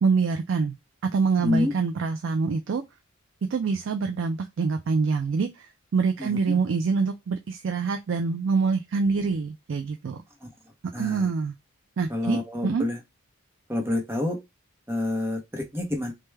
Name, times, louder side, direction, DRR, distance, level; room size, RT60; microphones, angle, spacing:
voice 1, 0.0-0.8 1.1-2.8 3.5-10.2 11.0-11.5 12.0-12.9, right 4 dB, 60° right, 0.4 m, -25 dB
voice 2, 1.4-1.7 6.2-6.4 10.4-10.5 10.9-11.3 12.1-13.0 13.7-14.4 14.9-16.1, left 2 dB, 10° right, 0.7 m, -28 dB
3.3 x 2.2 x 3.3 m
head